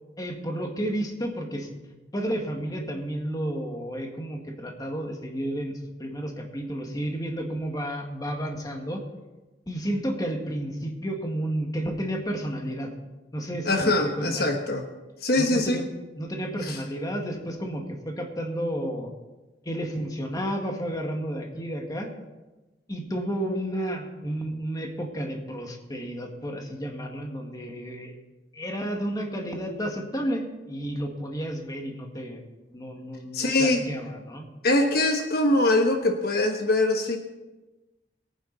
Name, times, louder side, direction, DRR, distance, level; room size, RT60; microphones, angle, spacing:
voice 1, 0.2-9.0 9.7-12.9 13.3-14.5 15.4-15.9 16.1-19.1 19.6-22.1 22.9-28.1 28.5-32.4 32.7-34.5, equal, 20° left, 2 dB, 1.8 m, -32 dB
voice 2, 13.6-14.9 15.2-15.8 16.7-16.8 33.3-33.8 34.6-37.2, left 2 dB, 60° left, 4 dB, 1.2 m, -23 dB
22.5 x 9.2 x 4.0 m, 1.1 s
head